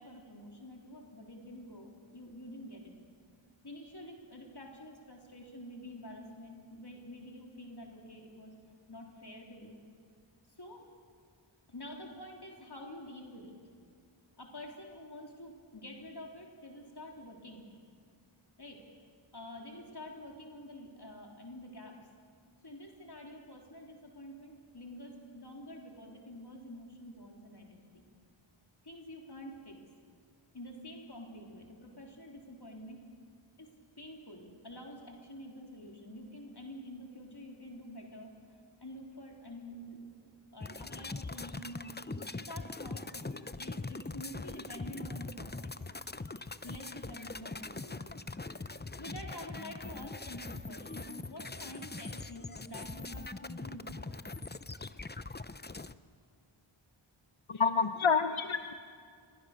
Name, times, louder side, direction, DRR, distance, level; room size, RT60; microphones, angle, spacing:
voice 1, 0.0-3.0 3.6-8.5 8.9-9.8 10.6-10.9 11.7-13.5 14.4-17.7 18.6-18.8 19.3-22.0 22.6-28.1 28.8-29.8 30.5-33.0 33.6-33.7 34.0-43.2 43.6-45.7 46.6-48.3 49.0-54.2, left 1 dB, 50° left, 0 dB, 3.7 m, -48 dB
sound 1, 40.6-55.9, left 3 dB, 20° left, 0.7 m, -42 dB
voice 2, 57.5-58.7, left 5 dB, 70° left, 9 dB, 0.9 m, -28 dB
28.0 x 23.0 x 6.7 m, 2.2 s
wide cardioid pair, 45°, 49 cm